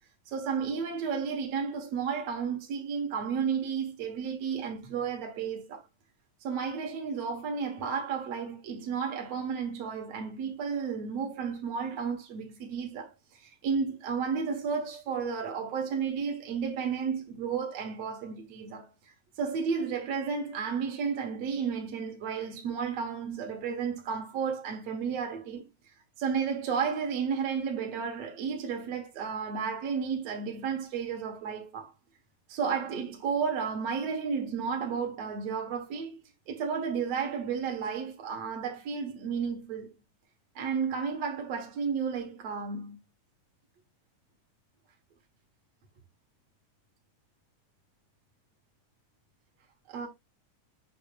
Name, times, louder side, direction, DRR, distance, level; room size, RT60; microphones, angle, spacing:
voice 1, 0.3-5.8 6.4-31.9 32.5-36.2 36.5-39.9 40.6-43.0 49.9-50.1, right 6 dB, 65° right, 2.3 m, -32 dB
8.6 x 5.9 x 2.4 m
omnidirectional pair, 3.3 m